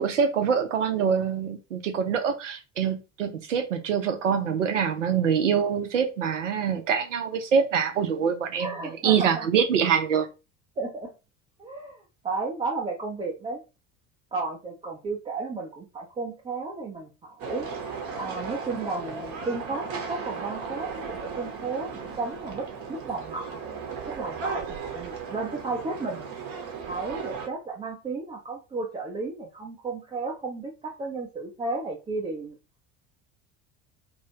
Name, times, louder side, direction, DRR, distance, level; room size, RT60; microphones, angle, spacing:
voice 1, 0.0-8.7 9.0-10.3, right 7 dB, 75° right, 0.6 m, -25 dB
voice 2, 8.6-9.5 10.8-11.1 11.6-13.6 14.3-17.7 18.2-23.6 24.1-26.3 26.9-32.6, right 3 dB, 15° right, 0.5 m, -33 dB
sound 1, 17.4-27.5, right 5 dB, 40° right, 0.7 m, -36 dB
2.3 x 2.1 x 2.8 m
figure-of-eight pair, 65°, 37 cm